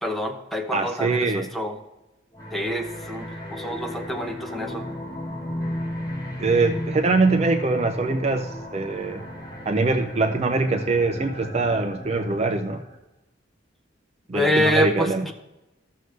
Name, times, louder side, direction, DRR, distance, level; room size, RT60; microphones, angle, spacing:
voice 1, 0.0-1.8 2.5-4.8 14.3-15.3, equal, ahead, 3 dB, 0.8 m, -26 dB
voice 2, 0.7-1.5 6.4-9.2 9.7-12.8 14.3-15.3, right 3 dB, 35° right, 7 dB, 0.5 m, -23 dB
sound 1, 2.3-13.0, left 1 dB, 20° left, 1.5 m, -34 dB
14.5 x 6.5 x 3.3 m, 1.0 s
head